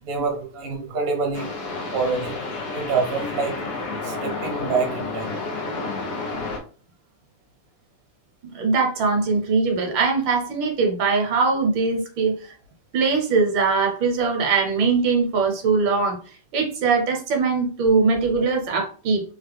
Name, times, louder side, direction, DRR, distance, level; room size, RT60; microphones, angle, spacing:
voice 1, 0.0-1.5 1.9-5.3, right 4 dB, 50° right, 1 dB, 0.8 m, -27 dB
sound 1, 1.3-6.6, left 3 dB, 65° left, 0.6 m, -30 dB
voice 2, 8.4-12.4 12.9-16.2 16.5-19.2, right 4 dB, 80° right, 2 dB, 1.6 m, -21 dB
3.6 x 2.1 x 3.3 m, 0.39 s
omnidirectional pair, 2.1 m